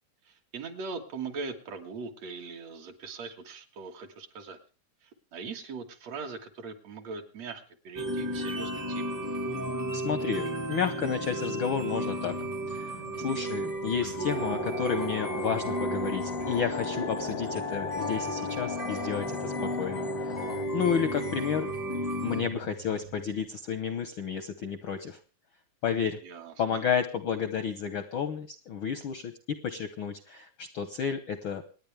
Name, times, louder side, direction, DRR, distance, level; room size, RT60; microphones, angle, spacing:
voice 1, 0.2-4.6 5.0-9.2 14.0-14.1 26.2-26.8, right 4 dB, 60° right, 4 dB, 2.6 m, -41 dB
sound 1, 7.9-22.4, equal, 15° right, 0.7 m, -33 dB
voice 2, 9.9-12.4 12.7-20.4 20.7-21.7 22.2-25.2 25.8-26.2 26.6-29.3 29.6-31.6, left 7 dB, 65° left, 10 dB, 1.3 m, -31 dB
sound 2, 11.8-23.5, right 6 dB, 80° right, 0.6 m, -47 dB
sound 3, 14.3-20.7, left 12 dB, 85° left, 2.4 m, -39 dB
26.5 x 9.8 x 3.4 m, 0.36 s
omnidirectional pair, 3.5 m